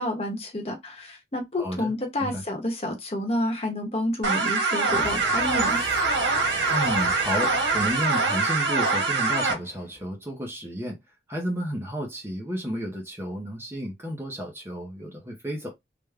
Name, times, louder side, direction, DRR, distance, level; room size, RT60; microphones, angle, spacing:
voice 1, 0.0-5.8, left 1 dB, 30° left, 0.9 m, -29 dB
voice 2, 1.6-1.9 2.2-2.4 6.7-11.0 11.3-15.7, equal, 15° right, 0.6 m, -32 dB
sound 1, 4.2-9.5, right 3 dB, 75° right, 1.2 m, -24 dB
sound 2, 4.9-10.0, left 2 dB, 50° left, 1.1 m, -39 dB
3.4 x 2.1 x 3.4 m
head